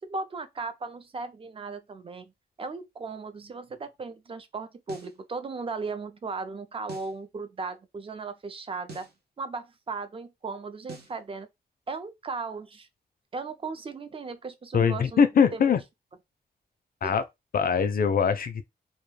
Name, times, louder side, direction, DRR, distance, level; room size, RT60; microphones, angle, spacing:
voice 1, 0.0-2.3 2.6-9.1 9.4-11.5 11.9-12.9 13.3-15.2 15.5-15.6 17.0-17.1, right 4 dB, 30° right, 0.4 m, -36 dB
sound 1, 4.9-5.2 6.9-7.2 8.9-9.2 10.9-11.2, right 2 dB, 70° right, 0.8 m, -44 dB
voice 2, 14.7-15.8 17.0-17.2 17.5-18.6, left 6 dB, 60° left, 0.4 m, -22 dB
2.2 x 2.1 x 3.1 m
wide cardioid pair, 120°, 17 cm